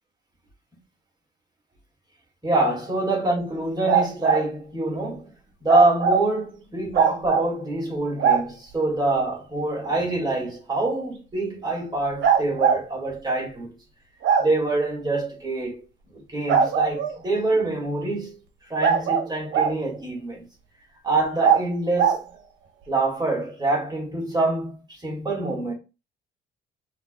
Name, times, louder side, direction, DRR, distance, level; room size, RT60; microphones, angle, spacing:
voice 1, 2.4-5.3 5.6-13.7 14.4-15.8 16.1-18.4 18.7-20.4 21.0-22.2 22.9-24.7 25.0-25.7, right 2 dB, 20° right, 2.3 m, -25 dB
sound 1, 3.9-4.4 5.7-6.2 6.9-7.5 8.2-8.4 10.2-10.3 12.2-12.8 14.2-14.5 16.5-17.2 18.8-19.8 21.4-21.6 22.0-22.2, right 6 dB, 75° right, 1.1 m, -20 dB
5.5 x 3.1 x 2.3 m
cardioid pair, 90°, 20 cm